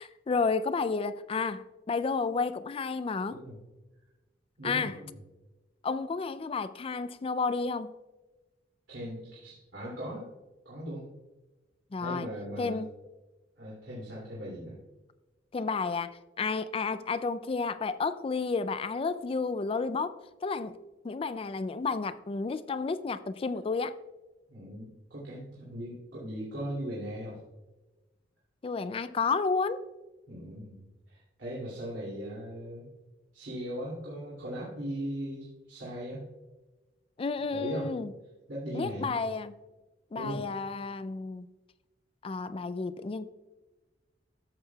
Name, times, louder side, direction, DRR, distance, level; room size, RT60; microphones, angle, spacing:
voice 1, 0.0-3.4 4.6-5.0 5.8-7.9 11.9-12.3 12.6-12.9 15.5-20.8 21.0-23.9 28.6-29.9 37.2-38.1 38.7-39.6 40.1-41.5 42.2-43.3, left 4 dB, 30° left, 0.3 m, -31 dB
voice 2, 4.6-5.2 8.9-10.3 10.6-11.1 12.0-12.8 13.6-14.8 24.5-27.4 30.3-32.9 33.3-36.2 37.5-37.9 38.5-39.1 40.2-40.4, right 1 dB, 75° right, 2.6 m, -38 dB
13.5 x 7.5 x 2.3 m
head